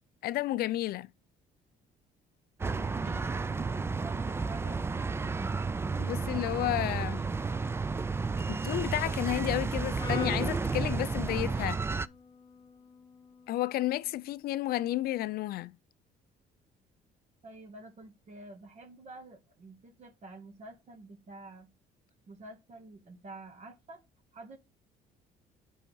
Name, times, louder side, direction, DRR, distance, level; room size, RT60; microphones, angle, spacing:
voice 1, 0.2-1.1 6.0-7.3 8.5-11.8 13.5-15.7, left 15 dB, 65° left, 0.5 m, -31 dB
sound 1, 2.6-12.1, right 4 dB, 15° right, 0.4 m, -32 dB
voice 2, 2.7-5.0 17.4-21.7 22.3-24.0 24.3-24.6, right 2 dB, 45° right, 2.0 m, -49 dB
Brass instrument, 10.0-14.2, left 4 dB, 25° left, 2.3 m, -47 dB
9.0 x 5.5 x 5.6 m
cardioid pair, 110°, 17 cm